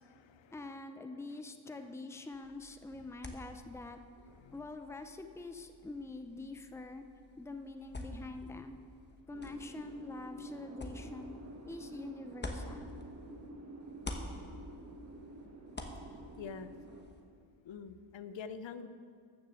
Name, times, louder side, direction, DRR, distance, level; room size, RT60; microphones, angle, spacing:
voice 1, 0.0-0.8 1.7-1.9 4.3-4.7 16.4-16.7 17.6-18.9, left 6 dB, 75° left, 12 dB, 0.7 m, -47 dB
voice 2, 0.5-4.0 4.5-7.0 7.4-8.8 9.3-11.3 11.6-12.9, left 2 dB, 5° left, 7 dB, 0.6 m, -45 dB
sound 1, 2.3-13.5 13.8-17.2, left 2 dB, 25° left, 1.1 m, -49 dB
sound 2, 9.3-17.0, right 1 dB, 35° right, 1.3 m, -49 dB
14.0 x 6.6 x 6.9 m, 2.2 s
wide cardioid pair, 130°, 46 cm